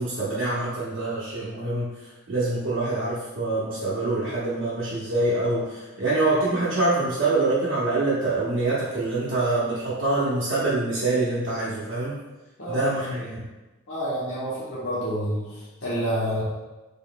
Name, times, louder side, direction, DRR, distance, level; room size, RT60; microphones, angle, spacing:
voice 1, 0.0-12.2 12.7-13.5, right 2 dB, 70° right, -9 dB, 0.8 m, -25 dB
voice 2, 12.6-13.2 13.9-16.4, equal, 65° left, -9 dB, 1.1 m, -29 dB
3.8 x 3.6 x 2.2 m, 1.1 s
head